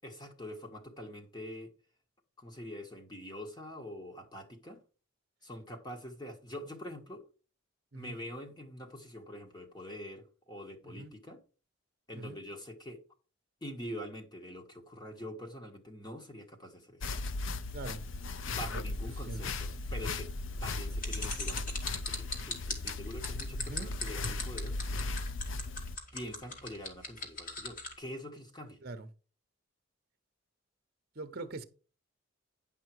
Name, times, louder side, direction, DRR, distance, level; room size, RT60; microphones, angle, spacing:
voice 1, 0.0-1.7 2.4-4.8 5.4-7.2 7.9-11.4 12.1-13.0 13.6-17.1 18.5-20.3 20.6-24.7 26.1-28.8, equal, 20° left, 1.5 m, -45 dB
voice 2, 10.8-11.1 12.1-12.4 17.7-18.0 18.7-18.8 19.3-19.5 23.5-23.9 28.8-29.1 31.1-31.6, right 2 dB, 50° right, 0.9 m, -42 dB
sound 1, 17.0-26.0, left 3 dB, 70° left, 0.6 m, -37 dB
sound 2, 21.0-27.9, left 3 dB, 40° left, 2.3 m, -38 dB
10.0 x 5.6 x 4.6 m
head